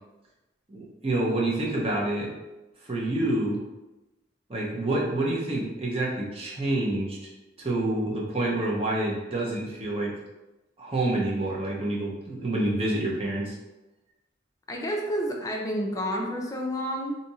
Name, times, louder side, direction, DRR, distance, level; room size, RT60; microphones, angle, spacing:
voice 1, 0.7-2.3 2.8-3.6 4.5-7.3 7.6-10.1 10.8-13.5, right 2 dB, 30° right, -4 dB, 0.8 m, -27 dB
voice 2, 14.7-17.2, equal, 20° left, 0 dB, 0.5 m, -29 dB
2.7 x 2.5 x 4.1 m, 1.0 s
head